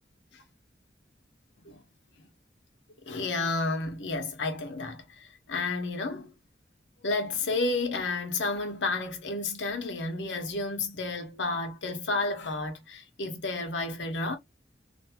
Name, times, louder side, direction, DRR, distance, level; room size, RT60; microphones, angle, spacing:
voice 1, 3.1-6.3 7.0-14.4, left 3 dB, 90° left, 0.9 m, -31 dB
2.6 x 2.3 x 2.8 m
head